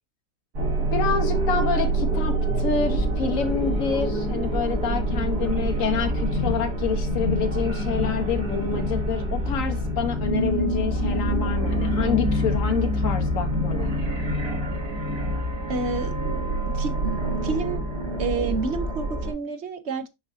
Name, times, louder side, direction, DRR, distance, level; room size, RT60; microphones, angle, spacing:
sound 1, 0.5-19.3, right 1 dB, 80° right, 2.7 m, -26 dB
voice 1, 0.9-14.0, left 5 dB, 55° left, 1.6 m, -28 dB
voice 2, 15.7-16.1 16.7-17.8 18.2-20.1, right 4 dB, 50° right, 1.0 m, -29 dB
7.0 x 5.1 x 2.8 m
omnidirectional pair, 1.7 m